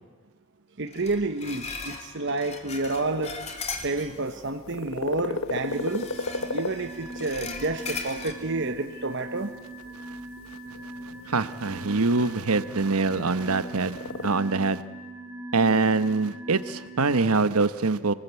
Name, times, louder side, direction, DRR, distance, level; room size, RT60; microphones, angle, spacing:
voice 1, 0.8-3.4 3.8-6.1 6.5-9.6, right 3 dB, 55° right, 7 dB, 1.1 m, -29 dB
sound 1, 0.9-4.4 5.6-8.3, left 4 dB, 30° left, 2.5 m, -38 dB
sound 2, 2.8-14.3, left 3 dB, 70° left, 1.3 m, -38 dB
sound 3, 5.6-17.2, right 1 dB, 10° right, 1.9 m, -41 dB
voice 2, 11.3-14.8 15.5-18.1, right 3 dB, 85° right, 13 dB, 1.1 m, -24 dB
27.5 x 20.0 x 8.2 m, 1.4 s
head